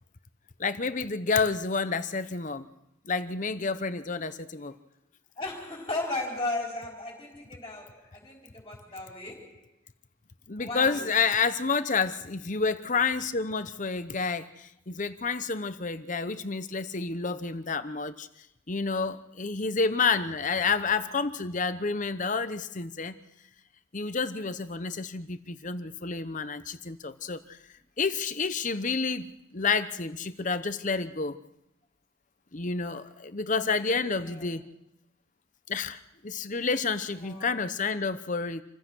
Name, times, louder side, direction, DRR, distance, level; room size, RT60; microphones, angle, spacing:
voice 1, 0.6-2.6 3.1-4.7 10.5-18.3 18.7-23.2 23.9-27.6 28.0-31.4 32.5-34.6 35.7-38.6, left 4 dB, 35° left, 0.9 m, -29 dB
voice 2, 5.4-9.7 10.6-11.2 20.6-21.0 33.5-34.5 36.9-37.6, left 2 dB, 20° left, 4.2 m, -37 dB
27.5 x 15.5 x 6.2 m
head